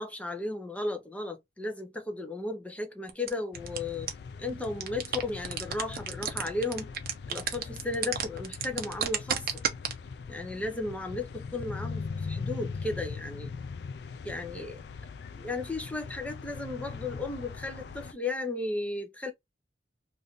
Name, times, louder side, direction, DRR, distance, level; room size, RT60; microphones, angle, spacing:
voice 1, 0.0-4.1 4.4-6.9 7.3-9.5 10.3-11.3 11.5-13.5 14.2-14.8 15.4-19.3, left 2 dB, 10° left, 0.6 m, -35 dB
sound 1, 3.1-3.8 4.1-4.2 4.5-9.9, right 8 dB, 55° right, 0.6 m, -29 dB
sound 2, 3.5-18.1, left 5 dB, 65° left, 0.3 m, -40 dB
2.6 x 2.6 x 3.5 m
head